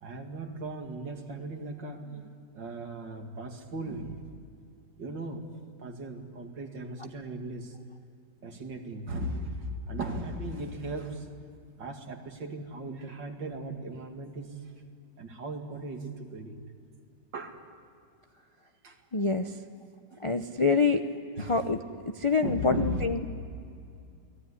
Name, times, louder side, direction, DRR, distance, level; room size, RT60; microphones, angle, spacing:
voice 1, 0.0-4.2 5.0-5.4 5.8-7.8 8.4-11.3 11.8-14.7 15.2-16.6 17.3-17.6 18.8-19.0 20.1-20.2 21.4-21.7 22.4-23.1, right 1 dB, 80° right, 4 dB, 2.9 m, -37 dB
voice 2, 19.1-19.5 20.2-21.0 21.4-21.8 22.2-23.2, left 4 dB, 50° left, 6 dB, 0.3 m, -26 dB
29.0 x 20.0 x 9.8 m, 2.4 s
omnidirectional pair, 1.9 m